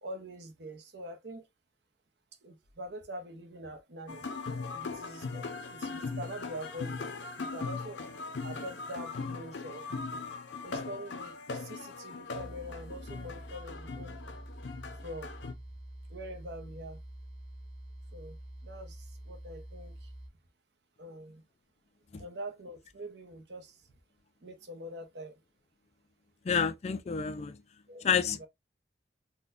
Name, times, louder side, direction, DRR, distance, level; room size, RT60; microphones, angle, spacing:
voice 1, 0.0-1.5 2.4-4.3 4.7-8.0 8.4-9.9 10.6-14.2 15.0-15.4 16.1-17.0 18.1-20.1 21.0-21.4 22.2-23.8 24.4-25.4 27.9-28.1 28.4-28.5, equal, 65° right, 0.8 m, -44 dB
sound 1, 4.1-15.5, left 4 dB, 75° left, 0.6 m, -39 dB
sound 2, 12.3-20.3, right 1 dB, 35° right, 1.7 m, -47 dB
voice 2, 26.5-27.6 28.0-28.5, left 6 dB, 35° left, 0.3 m, -29 dB
3.9 x 2.2 x 2.5 m
head